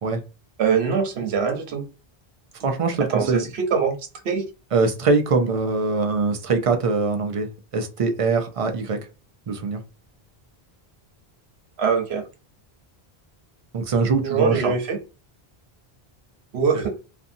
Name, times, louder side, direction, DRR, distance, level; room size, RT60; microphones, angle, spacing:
voice 1, 0.6-1.9 3.1-4.0 4.2-4.4 11.8-12.2 14.2-15.0 16.5-16.9, right 6 dB, 90° right, 1.0 m, -22 dB
voice 2, 2.6-3.4 4.7-9.0 9.5-9.8 13.7-14.7, right 4 dB, 55° right, 0.4 m, -22 dB
2.6 x 2.5 x 2.5 m
omnidirectional pair, 1.0 m